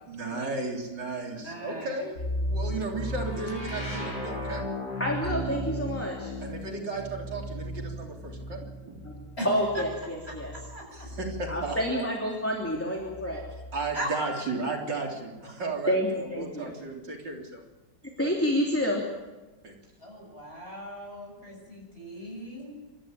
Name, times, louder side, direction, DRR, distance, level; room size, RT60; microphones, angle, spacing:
voice 1, 0.0-2.1 2.4-4.7 6.4-9.0 10.9-12.1 13.7-17.6 19.6-19.7, right 3 dB, 75° right, 0 dB, 4.2 m, -34 dB
voice 2, 1.3-1.9 3.3-3.4 9.4-9.8 10.2-11.1 13.9-14.5 20.0-22.7, equal, 35° left, 0 dB, 7.4 m, -38 dB
sound 1, 2.2-12.0 13.0-14.0, equal, 80° left, 7.4 m, -36 dB
voice 3, 5.0-6.3 9.0-9.2 9.4-10.5 11.5-13.4 15.9-16.7 18.2-19.0, equal, 5° left, -1 dB, 3.1 m, -28 dB
28.0 x 13.5 x 8.9 m, 1.2 s
omnidirectional pair, 1.9 m